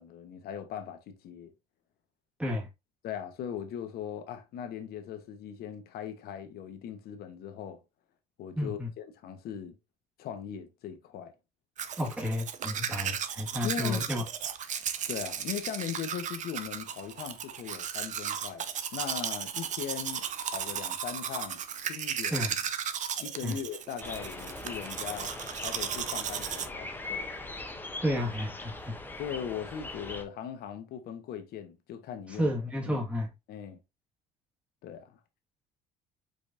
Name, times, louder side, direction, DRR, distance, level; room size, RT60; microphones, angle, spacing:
voice 1, 0.0-1.5 3.0-7.8 8.4-9.7 10.2-11.3 13.6-14.0 15.1-22.4 23.2-25.3 25.6-27.3 29.2-32.6 32.9-33.0 33.5-33.8 34.8-35.2, left 9 dB, 65° left, 1.0 m, -39 dB
voice 2, 8.5-8.9 12.0-14.2 22.3-22.5 23.4-23.6 28.0-28.9 32.4-33.3, left 1 dB, 5° right, 1.7 m, -31 dB
Domestic sounds home sounds, 11.8-26.7, right 8 dB, 45° right, 0.6 m, -35 dB
sound 1, 24.0-30.2, left 2 dB, 10° left, 0.8 m, -41 dB
4.9 x 4.1 x 2.6 m
supercardioid pair, 95°, 17 cm